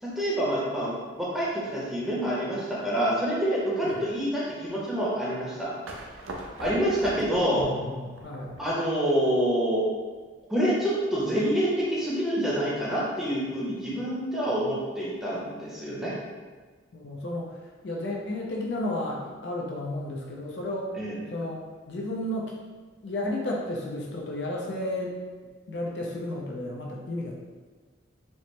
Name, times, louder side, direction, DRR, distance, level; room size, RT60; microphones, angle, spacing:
voice 1, 0.0-5.7 6.6-7.7 8.6-9.8 10.5-16.1 21.0-21.2, equal, ahead, -8 dB, 0.7 m, -27 dB
sound 1, 5.9-8.9, right 1 dB, 85° right, 0.5 m, -41 dB
voice 2, 7.5-8.6 16.9-17.5 17.8-20.9 21.3-22.5 23.0-25.1 25.7-27.4, left 1 dB, 60° left, -2 dB, 0.5 m, -32 dB
4.3 x 2.0 x 3.1 m, 1.4 s
head